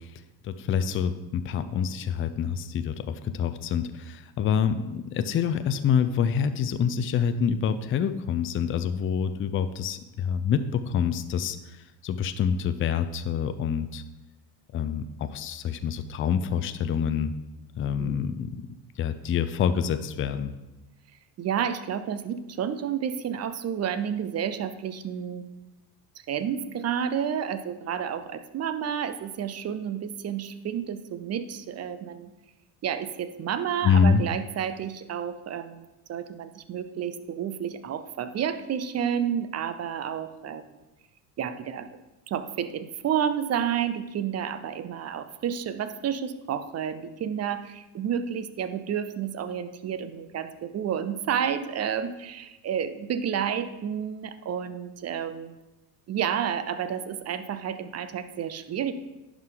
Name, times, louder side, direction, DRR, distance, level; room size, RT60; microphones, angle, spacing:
voice 1, 0.4-11.6 12.0-14.0 14.7-17.3 17.8-18.5 19.0-20.5 33.8-34.2, left 7 dB, 25° left, 10 dB, 0.5 m, -26 dB
voice 2, 21.4-25.4 26.3-32.3 32.8-40.6 41.4-42.0 42.3-55.5 56.1-58.9, right 8 dB, 35° right, 11 dB, 0.6 m, -30 dB
10.5 x 4.8 x 3.8 m, 1.0 s
supercardioid pair, 85°, 48 cm